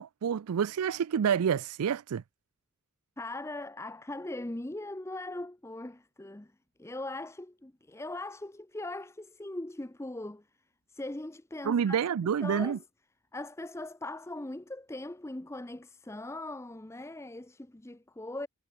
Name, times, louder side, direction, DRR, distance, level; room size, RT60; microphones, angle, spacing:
voice 1, 0.0-2.2 11.7-12.8, right 7 dB, 85° right, 0.4 m, -28 dB
voice 2, 3.2-10.5 10.9-12.0 12.4-12.9 13.3-18.5, left 2 dB, 10° left, 0.6 m, -40 dB
head